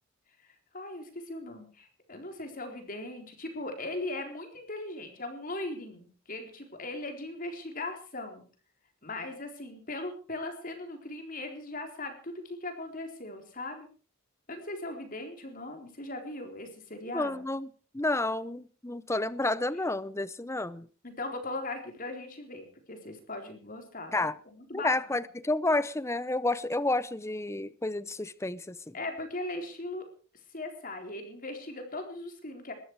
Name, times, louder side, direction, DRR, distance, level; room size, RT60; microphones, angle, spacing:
voice 1, 0.7-8.4 9.0-13.9 14.5-17.4 21.0-24.2 24.5-24.9 28.9-30.0 30.5-32.7, left 2 dB, 40° left, 4.1 m, -39 dB
voice 2, 17.1-17.7 17.9-20.9 24.1-24.3 24.7-29.0, left 2 dB, 15° left, 0.7 m, -30 dB
21.0 x 14.0 x 4.8 m
head